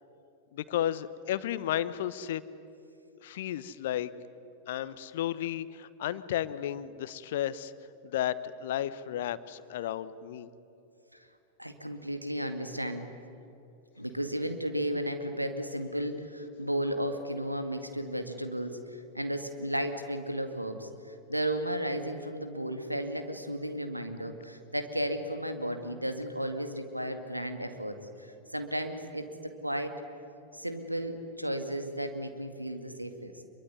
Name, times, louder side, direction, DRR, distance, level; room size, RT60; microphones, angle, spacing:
voice 1, 0.5-2.4 3.2-4.1 4.7-7.7 8.0-10.5, left 11 dB, 55° left, 15 dB, 1.1 m, -33 dB
voice 2, 11.6-13.1 14.0-20.9 21.3-29.3 29.6-29.9 30.5-33.4, right 1 dB, 90° right, 7 dB, 2.1 m, -34 dB
26.5 x 23.0 x 9.6 m, 2.8 s
figure-of-eight pair, 90°, 0 cm